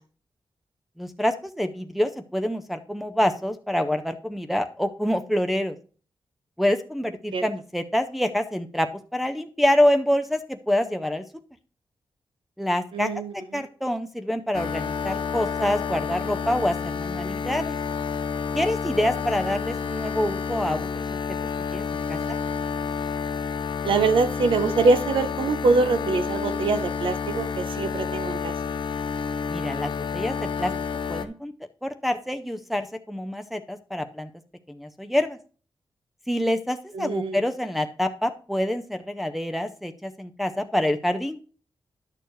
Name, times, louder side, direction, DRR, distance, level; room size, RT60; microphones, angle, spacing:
voice 1, 1.0-5.8 6.6-11.2 12.6-13.2 13.5-17.8 18.5-21.0 21.7-22.4 29.5-30.7 31.1-31.5 31.8-34.3 34.7-35.4 36.3-41.4, left 1 dB, ahead, 5 dB, 0.5 m, -26 dB
voice 2, 12.9-13.6 23.8-28.5 36.9-37.4, right 3 dB, 80° right, 10 dB, 0.8 m, -24 dB
sound 1, 14.5-31.3, left 6 dB, 65° left, 0.6 m, -30 dB
10.5 x 6.7 x 3.1 m, 0.39 s
wide cardioid pair, 135°, 9 cm